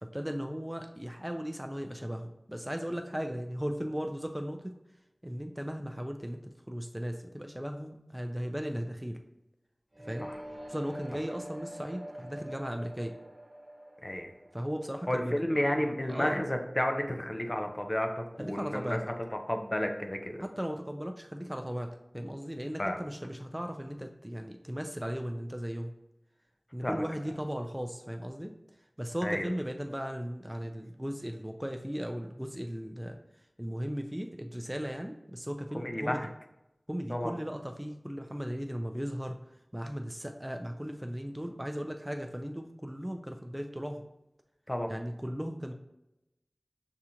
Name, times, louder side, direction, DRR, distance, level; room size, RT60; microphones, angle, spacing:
voice 1, 0.0-4.7 5.2-6.4 6.7-9.2 10.0-10.2 10.7-13.1 14.5-15.4 16.1-16.4 18.4-19.0 20.4-25.9 26.7-28.5 29.0-33.2 33.6-36.2 36.9-39.4 39.7-44.1 44.9-45.7, equal, 10° right, 4 dB, 0.4 m, -37 dB
sound 1, 9.9-15.8, right 1 dB, 50° right, 1.1 m, -46 dB
voice 2, 15.1-19.0 19.5-20.4 22.8-23.0 26.8-27.0 29.2-29.5 35.7-36.3 37.1-37.3 44.7-44.9, left 1 dB, 35° left, 4 dB, 0.6 m, -31 dB
6.8 x 2.4 x 2.8 m, 0.88 s
wide cardioid pair, 40°, 0 cm